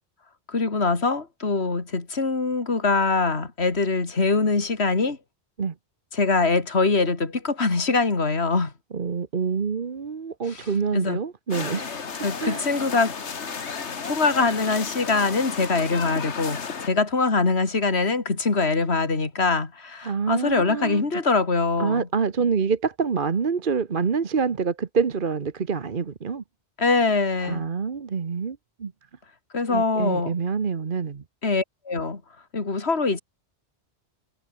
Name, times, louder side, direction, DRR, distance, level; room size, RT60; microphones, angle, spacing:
voice 1, 0.5-5.2 6.1-8.7 10.5-10.6 10.9-11.2 12.2-13.1 14.0-22.1 26.8-27.6 29.5-30.3 31.4-32.2 32.5-33.2, left 3 dB, 70° left, 2.9 m, -23 dB
voice 2, 8.9-12.0 12.4-12.7 20.0-21.0 21.8-26.4 27.4-28.9 29.7-31.2, right 5 dB, 50° right, 1.3 m, -26 dB
sound 1, 11.5-16.9, left 5 dB, 90° left, 1.8 m, -33 dB
omnidirectional pair, 1.1 m